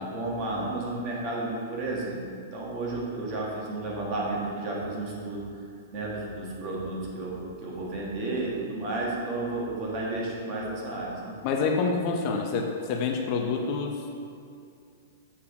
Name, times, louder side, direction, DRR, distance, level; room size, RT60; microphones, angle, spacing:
voice 1, 0.0-2.2 2.5-5.4 5.9-11.3, right 2 dB, 35° right, -4 dB, 1.5 m, -32 dB
voice 2, 11.4-14.1, left 4 dB, 35° left, 2 dB, 0.5 m, -27 dB
7.0 x 4.8 x 4.7 m, 2.4 s
supercardioid pair, 165°, 0 cm